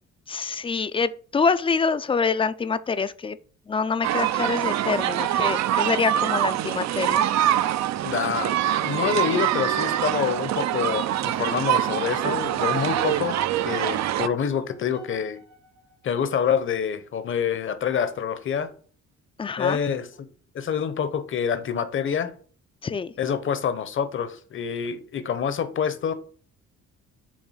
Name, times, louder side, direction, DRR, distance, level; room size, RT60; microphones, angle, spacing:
voice 1, 0.3-3.4 3.7-7.2 19.4-19.8 22.8-23.1, left 5 dB, 20° left, 0.4 m, -26 dB
sound 1, 4.0-14.3, right 12 dB, 65° right, 0.5 m, -24 dB
voice 2, 8.0-13.4 13.7-15.4 16.0-18.7 19.6-20.3 20.5-22.3 23.2-26.1, left 7 dB, 40° left, 0.8 m, -27 dB
sound 2, 13.6-16.8, right 1 dB, 85° right, 2.4 m, -51 dB
7.2 x 2.6 x 5.6 m
cardioid pair, 90°, 30 cm